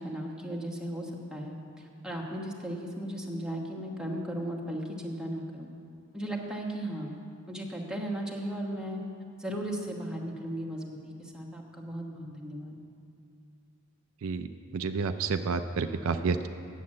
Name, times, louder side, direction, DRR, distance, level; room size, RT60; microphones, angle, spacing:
voice 1, 0.0-5.7 6.1-7.1 7.5-9.0 9.4-12.8, right 1 dB, 5° right, -1 dB, 1.2 m, -36 dB
voice 2, 14.7-16.5, right 4 dB, 70° right, 9 dB, 0.4 m, -29 dB
9.4 x 7.3 x 7.6 m, 2.4 s
head